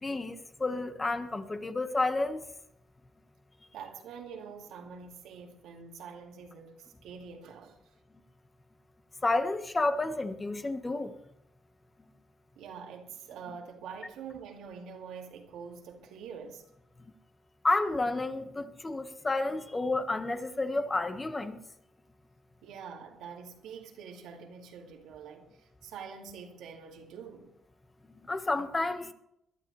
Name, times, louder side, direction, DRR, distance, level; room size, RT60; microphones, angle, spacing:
voice 1, 0.0-2.4 9.2-11.1 17.6-21.6 28.2-29.1, left 2 dB, 25° left, 1.4 m, -30 dB
voice 2, 3.7-6.7 7.0-7.8 12.6-16.6 22.6-25.5 25.8-27.5, right 6 dB, 85° right, 2.3 m, -45 dB
22.0 x 12.0 x 3.3 m
cardioid pair, 90°, 0 cm